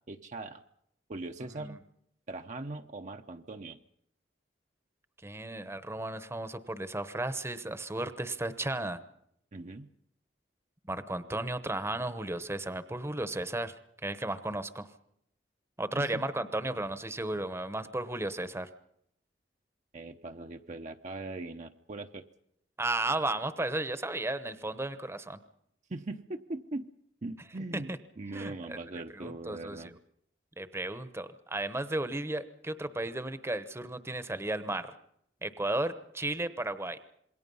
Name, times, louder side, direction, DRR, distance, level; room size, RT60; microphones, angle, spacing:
voice 1, 0.1-0.6 1.1-1.8 2.3-3.8 9.5-9.9 16.0-16.2 19.9-22.2 25.9-26.9 27.2-30.0, right 2 dB, 45° right, 5 dB, 0.8 m, -40 dB
voice 2, 5.2-9.0 10.9-13.7 14.0-14.9 15.8-18.7 22.8-25.4 27.9-28.0 28.3-28.8 29.1-29.9 30.6-34.9 35.4-37.0, right 2 dB, 15° right, 12 dB, 1.0 m, -34 dB
27.0 x 21.5 x 5.6 m, 0.73 s
head